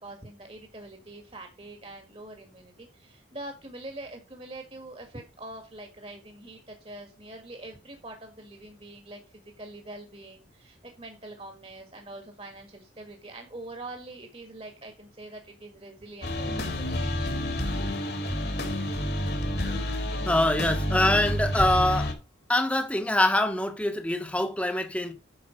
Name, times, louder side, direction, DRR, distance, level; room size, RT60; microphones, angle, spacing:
voice 1, 0.0-16.9, right 2 dB, 30° right, 1.7 m, -44 dB
sound 1, 16.2-22.1, left 1 dB, 55° left, 2.2 m, -29 dB
voice 2, 20.2-22.1 22.5-25.1, left 1 dB, 5° left, 1.2 m, -24 dB
8.8 x 6.3 x 5.2 m
head